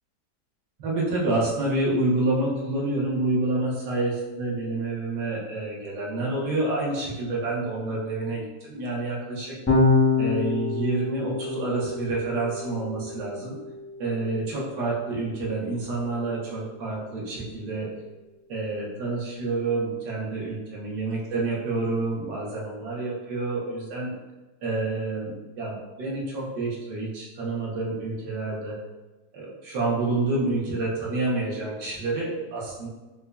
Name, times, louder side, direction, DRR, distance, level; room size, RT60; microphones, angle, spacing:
voice 1, 0.8-9.6 10.2-13.6 14.0-17.9 18.5-24.1 24.6-28.8 29.3-32.9, right 2 dB, 75° right, -5 dB, 1.5 m, -28 dB
Electric guitar / Bass guitar, 9.7-16.1, left 3 dB, 20° left, 0.4 m, -27 dB
5.2 x 2.2 x 2.3 m, 1.1 s
omnidirectional pair, 1.8 m